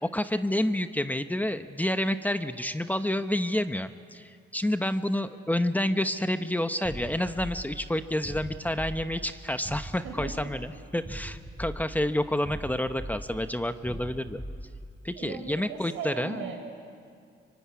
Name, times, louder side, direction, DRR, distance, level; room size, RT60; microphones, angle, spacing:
voice 1, 0.0-14.4 15.0-16.5, left 1 dB, 10° left, 9 dB, 0.9 m, -29 dB
sound 1, 6.8-15.1, equal, 15° right, 6.3 m, -41 dB
voice 2, 10.0-10.5 15.2-16.6, right 6 dB, 85° right, 3 dB, 5.6 m, -38 dB
25.0 x 24.0 x 9.7 m, 2.2 s
cardioid pair, 90°, 20 cm